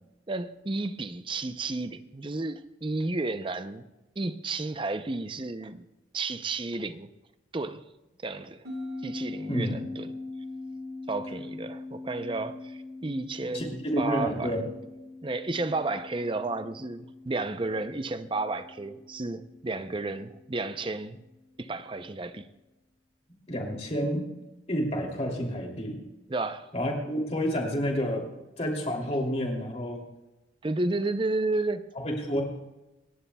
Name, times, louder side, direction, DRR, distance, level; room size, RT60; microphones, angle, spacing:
voice 1, 0.3-3.8 4.2-5.8 6.1-7.1 7.5-7.8 8.2-8.7 9.0-10.1 11.1-14.7 15.2-21.2 21.6-22.5 26.3-26.7 30.6-31.8, right 2 dB, 25° right, 0.5 m, -32 dB
sound 1, 8.6-21.4, left 2 dB, 55° right, 1.6 m, -42 dB
voice 2, 9.5-9.8 13.5-14.6 23.5-24.3 24.7-26.0 26.7-28.2 28.6-30.0 32.0-32.4, equal, 30° left, 2.8 m, -29 dB
27.0 x 11.5 x 2.3 m
head